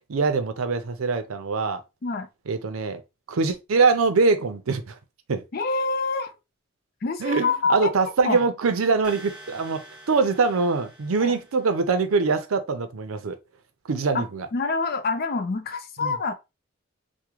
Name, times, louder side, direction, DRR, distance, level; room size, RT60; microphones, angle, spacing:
voice 1, 0.1-1.8 2.5-3.0 3.3-5.0 5.3-5.4 7.2-9.8 10.1-13.4 13.9-14.5 16.0-16.2, right 4 dB, 85° right, 0.5 m, -23 dB
voice 2, 5.5-6.3 7.0-7.9 8.2-8.4 11.2-11.4 14.1-14.2 14.5-16.3, left 4 dB, 45° left, 0.4 m, -26 dB
sound 1, 9.0-11.9, right 1 dB, 5° right, 0.9 m, -47 dB
3.5 x 2.1 x 2.9 m
head